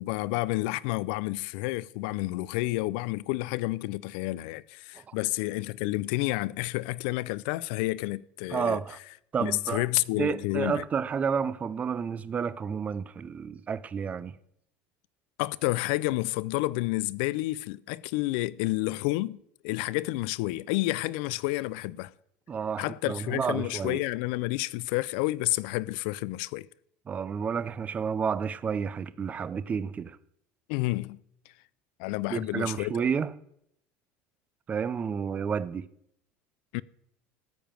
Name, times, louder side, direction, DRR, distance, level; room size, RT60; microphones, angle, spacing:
voice 1, 0.0-8.8 9.4-10.8 15.4-19.4 19.6-22.1 22.8-26.7 30.7-31.2 32.0-33.0 36.7-36.8, left 20 dB, 80° left, 0.4 m, -30 dB
voice 2, 8.5-9.0 9.3-9.9 10.2-14.4 22.5-24.0 27.1-30.2 32.3-33.3 34.7-35.9, right 6 dB, 25° right, 0.5 m, -30 dB
13.5 x 5.1 x 9.0 m
supercardioid pair, 130°, 6 cm